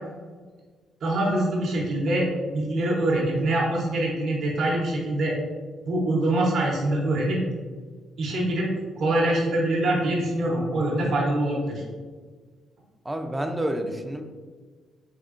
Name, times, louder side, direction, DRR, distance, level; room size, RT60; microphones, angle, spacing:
voice 1, 1.0-5.3 5.8-7.4 8.2-8.7 9.0-11.8, right 1 dB, 65° right, -4 dB, 0.8 m, -24 dB
voice 2, 13.0-14.2, right 1 dB, 10° right, 5 dB, 0.3 m, -29 dB
3.6 x 3.5 x 2.4 m, 1.5 s
cardioid pair, 90°, 0 cm